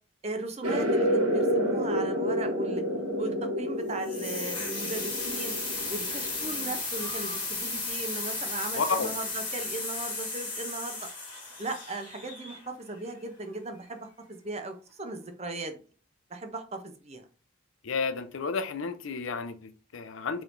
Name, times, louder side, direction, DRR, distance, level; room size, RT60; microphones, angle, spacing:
voice 1, 0.2-2.8 3.2-5.5 5.9-11.1 11.6-15.8 16.3-17.2, right 2 dB, 30° right, 6 dB, 0.6 m, -37 dB
sound 1, 0.6-6.8, equal, 85° right, 1.2 m, -29 dB
sound 2, 4.0-12.9, left 3 dB, 25° left, 1.4 m, -35 dB
voice 2, 8.7-9.1 17.8-20.4, left 4 dB, 75° left, 10 dB, 0.5 m, -31 dB
4.5 x 3.4 x 2.5 m, 0.38 s
head